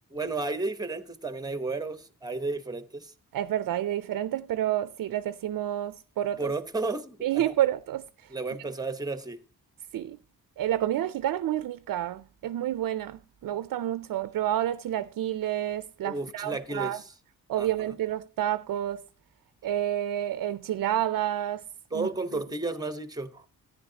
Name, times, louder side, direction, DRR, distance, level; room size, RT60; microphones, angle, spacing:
voice 1, 0.1-3.1 6.4-7.2 7.4-7.5 8.3-9.4 16.0-17.1 17.6-17.9 21.9-23.4, right 3 dB, 10° right, 1.0 m, -33 dB
voice 2, 3.3-6.5 7.2-8.1 9.9-10.2 10.6-17.0 17.5-19.0 19.6-21.6 21.9-22.1, right 12 dB, 75° right, 0.5 m, -29 dB
13.5 x 10.0 x 2.8 m
cardioid pair, 100°, 33 cm